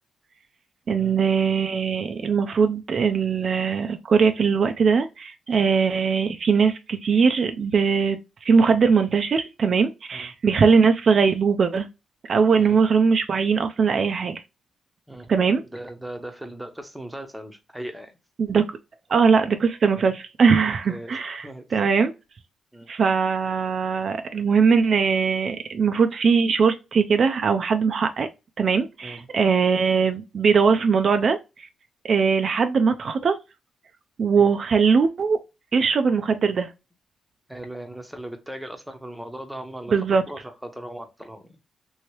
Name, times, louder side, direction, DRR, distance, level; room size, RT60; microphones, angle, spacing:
voice 1, 0.9-11.9 12.3-14.4 15.3-15.6 18.4-18.6 19.1-22.1 22.9-28.3 28.6-31.7 32.0-33.4 34.2-35.4 35.7-36.7 39.9-40.2, right 5 dB, 50° right, 0.3 m, -21 dB
voice 2, 15.7-18.1 20.0-20.1 20.6-21.7 22.7-22.9 29.0-29.3 34.4-34.5 37.5-41.6, right 1 dB, 5° right, 0.7 m, -38 dB
2.9 x 2.7 x 3.0 m
cardioid pair, 105°, 0 cm